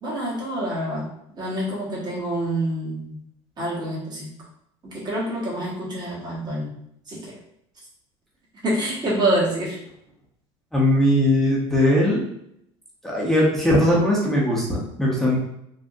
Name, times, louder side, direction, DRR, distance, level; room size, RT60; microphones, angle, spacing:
voice 1, 0.0-1.1 1.4-3.2 3.6-4.3 4.8-6.7 7.1-7.4 8.6-9.8, right 1 dB, 30° right, -5 dB, 1.4 m, -26 dB
voice 2, 10.7-12.2 13.0-15.4, left 1 dB, ahead, -6 dB, 0.9 m, -19 dB
3.6 x 2.5 x 2.6 m, 0.74 s
supercardioid pair, 110°, 14 cm